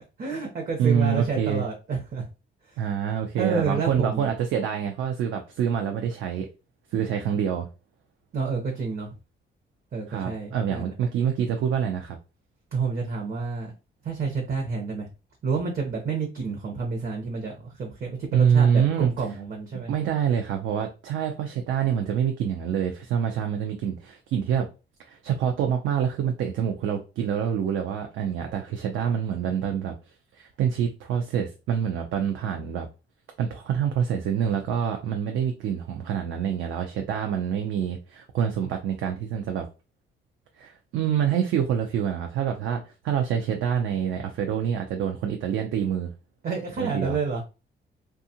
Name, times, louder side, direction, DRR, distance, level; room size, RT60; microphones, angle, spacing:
voice 1, 0.2-2.3 2.7-2.8 3.4-4.3 8.3-9.1 9.9-10.9 12.7-13.7 14.0-15.1 15.4-19.9 46.4-47.4, right 4 dB, 50° right, 0.8 m, -29 dB
voice 2, 0.8-1.6 2.8-6.5 6.9-7.7 10.1-12.2 18.3-19.1 19.9-24.7 25.1-29.9 30.3-32.9 33.4-39.7 40.6-46.1 46.8-47.2, right 8 dB, 75° right, 0.5 m, -26 dB
2.7 x 2.4 x 2.7 m
cardioid pair, 90°, 20 cm